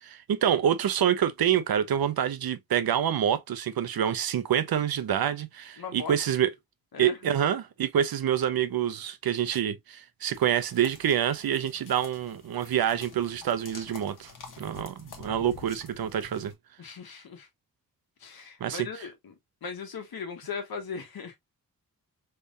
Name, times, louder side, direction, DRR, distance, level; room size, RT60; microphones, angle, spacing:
voice 1, 0.0-6.5 7.0-14.3 14.6-16.5 18.6-18.9, right 9 dB, 75° right, 0.7 m, -27 dB
voice 2, 5.8-6.1 6.9-7.3 16.8-17.5 18.2-19.3 19.6-21.4, left 5 dB, 80° left, 1.3 m, -38 dB
sound 1, 10.3-16.5, left 4 dB, 60° left, 1.3 m, -48 dB
3.6 x 3.3 x 2.5 m
wide cardioid pair, 95°, 36 cm